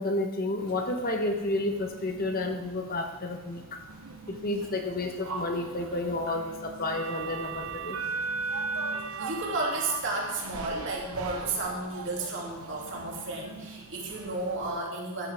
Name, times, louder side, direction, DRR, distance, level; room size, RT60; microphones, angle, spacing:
voice 1, 0.0-3.8 4.3-8.0, left 2 dB, 40° left, 4 dB, 1.3 m, -31 dB
sound 1, 0.6-14.8, right 4 dB, 75° right, 1.2 m, -39 dB
voice 2, 9.2-15.3, right 2 dB, 55° right, -2 dB, 3.0 m, -32 dB
14.0 x 11.0 x 3.7 m, 1.1 s
head